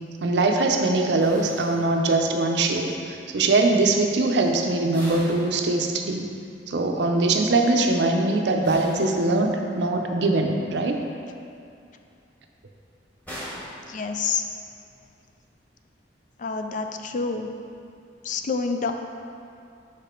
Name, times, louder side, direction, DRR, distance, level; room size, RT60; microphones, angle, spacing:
voice 1, 0.2-6.2 6.7-11.0, right 2 dB, 70° right, 3 dB, 0.6 m, -22 dB
sound 1, 1.2-2.5 4.9-6.3 8.6-9.8 13.3-14.6, equal, 10° left, 1.5 m, -41 dB
voice 2, 13.9-14.4 16.4-17.5 18.2-18.9, left 5 dB, 45° left, 5 dB, 0.4 m, -27 dB
5.6 x 5.0 x 4.4 m, 2.5 s
head